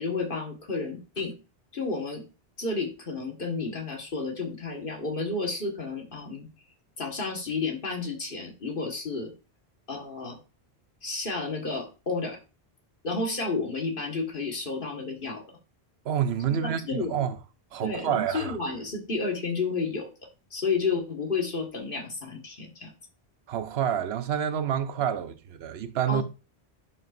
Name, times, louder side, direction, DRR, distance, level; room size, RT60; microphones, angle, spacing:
voice 1, 0.0-1.4 1.7-2.2 2.6-6.5 7.0-9.3 9.9-10.4 11.0-12.4 13.0-15.6 16.5-17.2 17.8-20.1 20.5-22.9 26.1-26.2, left 4 dB, 55° left, 1.8 m, -31 dB
voice 2, 16.0-17.4 17.7-18.6 23.5-26.2, right 9 dB, 75° right, 0.8 m, -28 dB
11.0 x 5.4 x 2.5 m
omnidirectional pair, 1.1 m